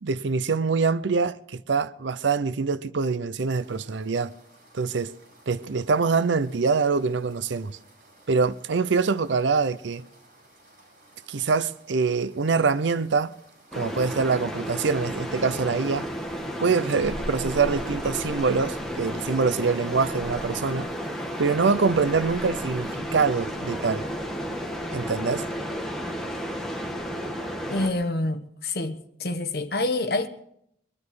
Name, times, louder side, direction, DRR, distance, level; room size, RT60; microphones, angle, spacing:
voice 1, 0.0-4.3 4.7-5.1 5.5-7.7 8.3-10.0 11.3-13.3 13.7-16.1 16.6-20.9 21.4-24.1 24.9-25.5, right 4 dB, 90° right, 0.6 m, -24 dB
sound 1, 3.5-23.0, right 1 dB, 45° right, 6.3 m, -56 dB
sound 2, 13.7-27.9, equal, ahead, 1.6 m, -32 dB
voice 2, 27.7-30.3, left 2 dB, 55° left, 1.1 m, -27 dB
22.5 x 12.0 x 4.8 m
head